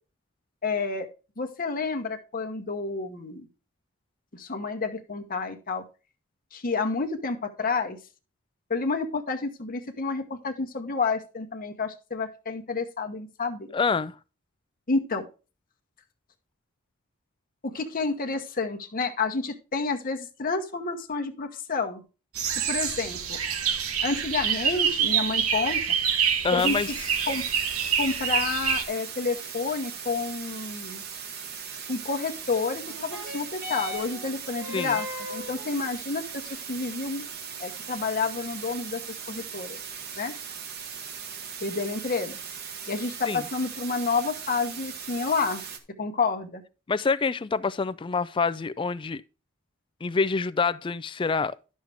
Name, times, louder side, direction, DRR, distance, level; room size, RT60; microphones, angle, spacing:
voice 1, 0.6-1.1 1.4-3.5 4.3-5.8 6.5-8.0 8.7-13.7 14.9-15.2 17.6-22.0 22.7-23.4 24.0-25.8 26.5-26.8 27.3-27.4 28.0-31.0 31.9-37.2 37.6-39.0 39.3-39.8 40.2-40.3 41.6-42.3 42.9-45.6 46.0-46.6, left 4 dB, 40° left, 1.0 m, -29 dB
voice 2, 13.7-14.2 26.4-26.9 34.7-35.0 43.3-43.5 46.9-49.2 50.0-51.6, left 4 dB, 25° left, 0.3 m, -26 dB
sound 1, 22.3-28.8, right 7 dB, 90° right, 1.1 m, -26 dB
sound 2, 26.6-45.8, right 7 dB, 50° right, 1.2 m, -39 dB
sound 3, 32.8-41.8 42.6-42.7, left 2 dB, 70° right, 4.0 m, -42 dB
11.0 x 6.4 x 3.4 m
head